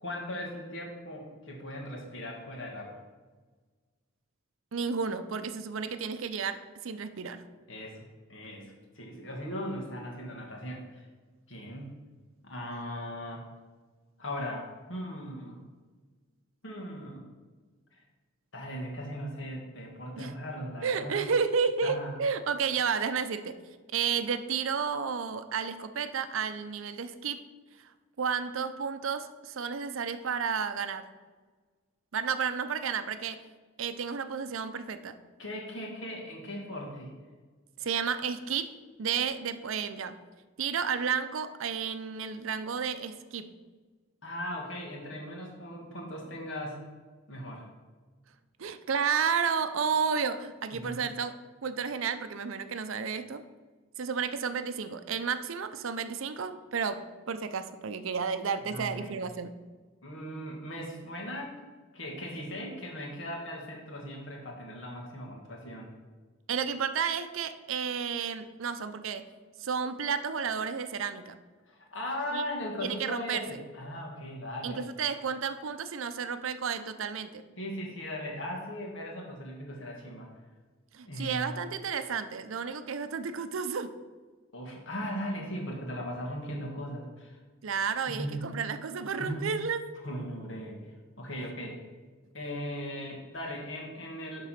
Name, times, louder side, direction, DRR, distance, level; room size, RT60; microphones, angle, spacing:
voice 1, 0.0-3.0 7.7-8.0 8.3-11.1 11.5-12.0 12.4-13.5 14.2-15.6 16.6-17.2 17.9-18.0 18.5-21.3 21.8-22.2 35.4-37.1 44.2-46.9 47.3-47.7 50.7-51.1 58.7-59.2 60.0-61.6 61.9-65.9 71.7-74.8 77.6-80.3 81.1-81.5 84.5-87.4 88.1-88.7 89.2-89.6 90.0-91.8 92.3-94.5, equal, 60° left, -1 dB, 1.9 m, -38 dB
voice 2, 4.7-7.4 20.2-20.3 20.8-23.6 23.9-27.4 28.2-31.1 32.1-33.4 33.8-35.2 37.8-40.2 40.6-43.5 48.6-53.4 54.0-59.5 66.5-69.3 69.6-71.4 72.3-72.4 72.8-73.4 74.6-77.4 80.9-83.9 87.6-89.8, right 6 dB, 70° right, 11 dB, 0.5 m, -32 dB
11.0 x 3.8 x 5.8 m, 1.4 s
head